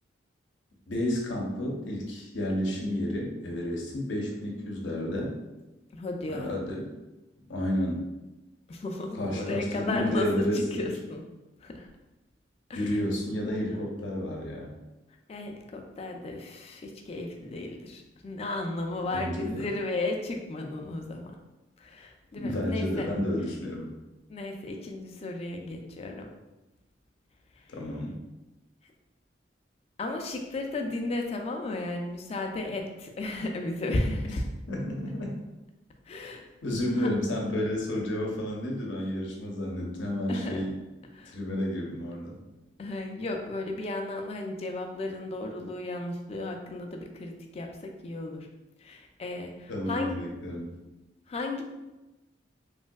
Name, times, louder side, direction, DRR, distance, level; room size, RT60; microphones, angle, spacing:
voice 1, 0.9-5.3 6.3-6.9 7.5-8.0 9.1-10.6 12.7-14.7 19.1-19.7 22.4-24.0 27.7-28.2 34.7-35.4 36.6-40.7 41.3-42.4 49.7-50.7, left 1 dB, 90° left, -1 dB, 0.7 m, -31 dB
voice 2, 5.9-6.6 8.7-11.2 11.6-11.9 12.7-13.0 15.3-21.4 21.8-23.1 24.3-26.3 30.0-34.4 36.1-36.5 37.0-37.1 40.3-40.6 41.1-41.4 42.8-48.5 48.8-50.2 51.3-51.6, left 2 dB, 35° left, 3 dB, 0.3 m, -34 dB
3.2 x 2.6 x 2.3 m, 1.0 s
head